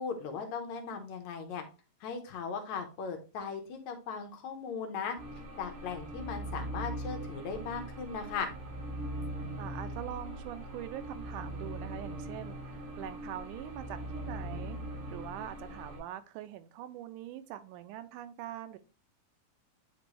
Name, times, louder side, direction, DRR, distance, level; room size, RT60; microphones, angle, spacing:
voice 1, 0.0-1.6 2.0-5.2 5.6-8.5, left 5 dB, 70° left, 4 dB, 2.2 m, -38 dB
sound 1, 5.2-16.0, right 1 dB, 70° right, 4.1 m, -41 dB
voice 2, 9.6-18.8, right 12 dB, 85° right, 11 dB, 2.1 m, -43 dB
9.8 x 3.4 x 3.0 m, 0.33 s
omnidirectional pair, 3.6 m